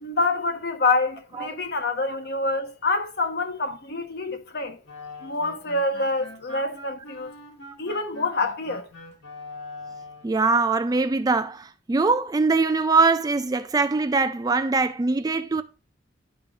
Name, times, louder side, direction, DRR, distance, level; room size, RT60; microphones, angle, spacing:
voice 1, 0.0-4.8 5.2-7.3 7.8-8.9, left 3 dB, 60° left, 1.1 m, -26 dB
sound 1, 4.8-10.4, left 2 dB, 80° left, 1.9 m, -42 dB
voice 2, 10.2-15.6, right 3 dB, 20° right, 0.3 m, -22 dB
11.5 x 5.0 x 2.4 m
head